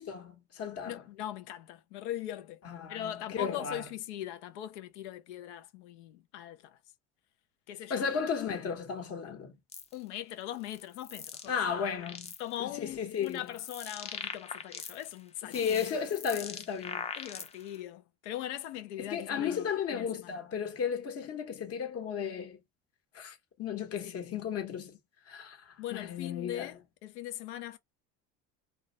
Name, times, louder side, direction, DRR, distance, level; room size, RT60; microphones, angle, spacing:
voice 1, 0.0-1.0 2.6-3.8 7.9-9.5 11.5-12.3 12.6-13.4 15.5-17.0 19.1-22.6 23.1-25.0 25.3-26.7, left 7 dB, 45° left, 1.1 m, -34 dB
voice 2, 0.9-2.6 2.9-6.8 7.7-8.1 9.9-11.5 12.4-15.8 17.1-19.7 19.9-20.4 24.0-24.2 25.8-27.8, left 12 dB, 90° left, 0.6 m, -40 dB
Alien Crickets, 9.7-9.9 10.6-11.5 11.9-12.6 13.1-15.2 15.5-17.8, left 5 dB, 20° left, 0.5 m, -42 dB
2.4 x 2.1 x 2.7 m
supercardioid pair, 95°, 33 cm